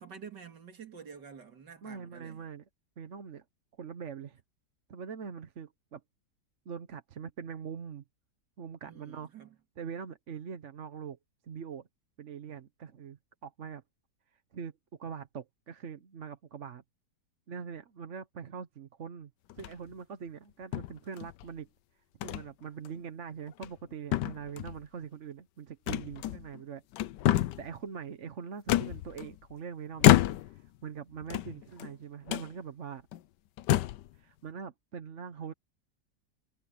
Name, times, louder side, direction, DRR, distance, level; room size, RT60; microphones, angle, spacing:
voice 1, 0.0-2.5 8.8-9.6, right 6 dB, 90° right, 2.9 m, -49 dB
voice 2, 1.8-2.6 3.0-3.4 3.8-4.4 4.9-6.0 6.7-8.0 8.6-9.3 9.8-11.2 11.4-11.9 12.2-13.8 14.5-14.7 15.0-16.8 17.5-21.7 22.2-26.8 27.6-30.2 30.4-33.1 34.1-35.5, right 7 dB, 50° right, 1.2 m, -43 dB
sound 1, 19.5-19.9 20.7-21.5 22.2-22.5 22.9-23.0 23.5-23.9 24.1-24.8 25.9-26.6 26.9-27.7 28.7-29.5 30.0-30.7 31.2-31.9 32.3-32.5 33.1-33.2 33.6-34.1, left 14 dB, 85° left, 1.3 m, -28 dB
omnidirectional pair, 1.8 m